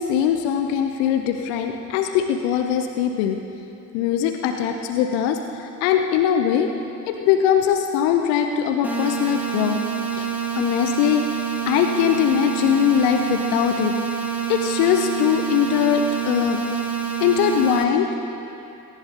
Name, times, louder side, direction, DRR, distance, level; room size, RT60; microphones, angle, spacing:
voice 1, 0.0-3.4 3.9-6.7 7.1-9.8 10.1-10.3 10.6-11.2 11.7-13.9 14.5-16.8 17.2-18.1, left 9 dB, 65° left, 6 dB, 1.0 m, -21 dB
sound 1, 8.8-17.8, right 7 dB, 5° right, 2.3 m, -27 dB
21.5 x 17.5 x 3.8 m, 2.9 s
figure-of-eight pair, 45°, 45 cm